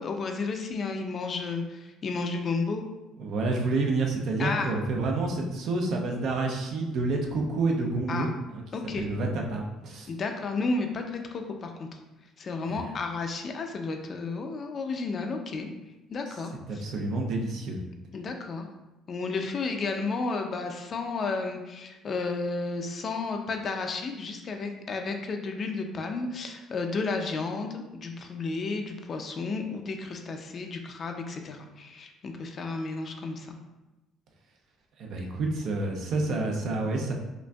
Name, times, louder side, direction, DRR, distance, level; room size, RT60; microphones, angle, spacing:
voice 1, 0.0-2.8 4.4-4.7 8.1-8.3 8.7-9.1 10.1-12.0 12.4-15.7 16.1-16.8 18.1-18.7 19.1-33.6, left 3 dB, 35° left, 4 dB, 0.4 m, -32 dB
voice 2, 3.2-8.6 9.0-10.1 12.7-12.9 16.7-17.8 35.0-37.1, right 3 dB, 60° right, 1 dB, 0.6 m, -29 dB
5.1 x 2.6 x 2.3 m, 1.0 s
cardioid pair, 135°, 0 cm